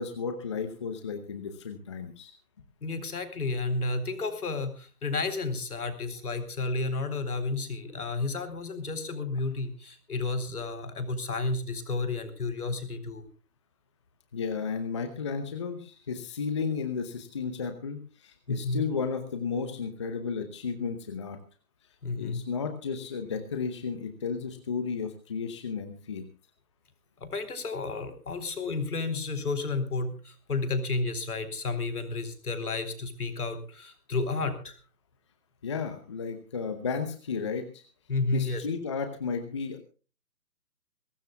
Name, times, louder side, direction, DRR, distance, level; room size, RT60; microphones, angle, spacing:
voice 1, 0.0-2.3 14.3-21.4 22.1-26.2 35.6-37.8 38.3-39.8, left 5 dB, 20° left, 7 dB, 0.9 m, -33 dB
voice 2, 2.8-13.3 18.5-18.9 22.0-22.4 27.2-34.8 38.1-38.7, left 3 dB, 60° left, 10 dB, 4.3 m, -31 dB
22.5 x 18.5 x 2.3 m, 0.37 s
figure-of-eight pair, 150°, 49 cm